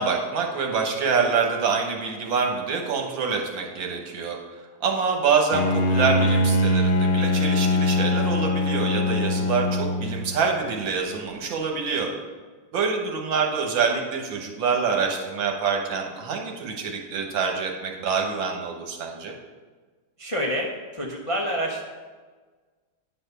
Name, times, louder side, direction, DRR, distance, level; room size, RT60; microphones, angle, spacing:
voice 1, 0.0-4.4 4.8-12.1 12.7-19.3, right 5 dB, 75° right, 1 dB, 1.8 m, -26 dB
Bowed string instrument, 5.5-10.5, left 1 dB, 65° left, 0.9 m, -22 dB
voice 2, 20.2-21.8, equal, 35° left, -2 dB, 0.5 m, -28 dB
9.6 x 4.2 x 6.7 m, 1.4 s
omnidirectional pair, 2.1 m